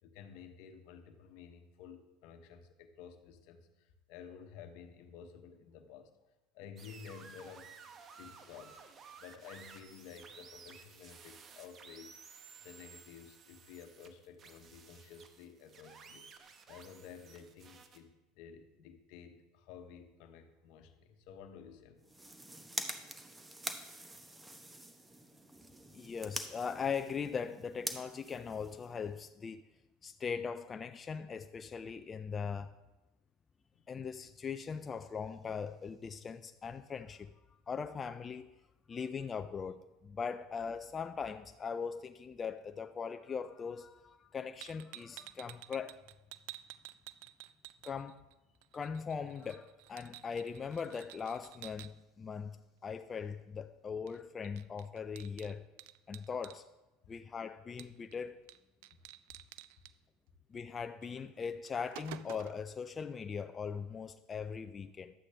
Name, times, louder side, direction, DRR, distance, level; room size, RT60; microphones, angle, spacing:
voice 1, 0.0-6.1 6.5-7.7 8.2-8.8 9.2-12.3 12.6-16.3 16.7-22.1 33.7-33.8 57.0-57.1, left 7 dB, 65° left, 1.0 m, -53 dB
sound 1, 6.8-18.0, right 5 dB, 40° right, 0.9 m, -55 dB
sound 2, 22.0-29.3, right 2 dB, 10° right, 1.0 m, -45 dB
voice 2, 25.9-29.6 30.0-32.7 33.9-37.3 37.7-38.5 38.9-46.0 47.8-48.2 48.7-52.6 52.8-55.7 56.1-56.7 57.1-58.4 60.5-65.1, left 6 dB, 25° left, 0.3 m, -40 dB
sound 3, 44.6-48.3 48.6-51.9 54.1-54.2 54.4-56.6 57.8-58.2 58.5-58.6 58.8-59.9 61.0-61.1 61.5-62.7, right 15 dB, 75° right, 0.4 m, -51 dB
11.5 x 8.1 x 3.4 m
supercardioid pair, 95°, 0 cm